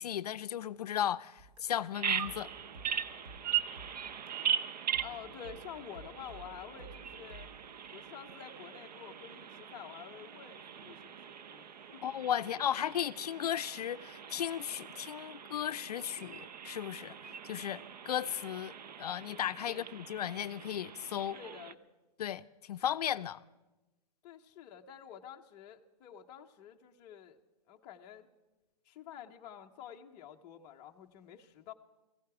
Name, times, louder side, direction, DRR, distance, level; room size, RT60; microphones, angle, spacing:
voice 1, 0.0-2.5 12.0-17.2 17.4-21.4 22.2-23.4, left 10 dB, 65° left, 0.4 m, -35 dB
sound 1, 1.4-4.5 4.9-7.6, right 2 dB, 50° right, 1.9 m, -53 dB
Bird vocalization bird call bird song, 1.9-21.7, right 8 dB, 75° right, 0.7 m, -40 dB
voice 2, 5.0-7.5 7.9-12.0 19.7-19.8 21.3-21.8 24.2-27.4 27.7-28.3 28.8-31.7, left 9 dB, 20° left, 0.5 m, -49 dB
17.5 x 15.5 x 4.7 m
hypercardioid pair, 155°, 21 cm